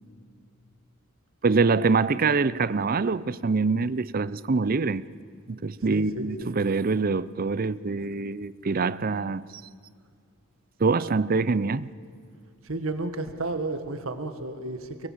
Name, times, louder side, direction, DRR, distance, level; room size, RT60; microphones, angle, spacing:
voice 1, 1.4-5.0 5.5-9.6 10.8-11.9, right 4 dB, 45° right, 0.5 m, -25 dB
voice 2, 5.9-6.5 12.6-15.1, right 2 dB, 80° right, 1.7 m, -32 dB
24.5 x 22.0 x 7.4 m
head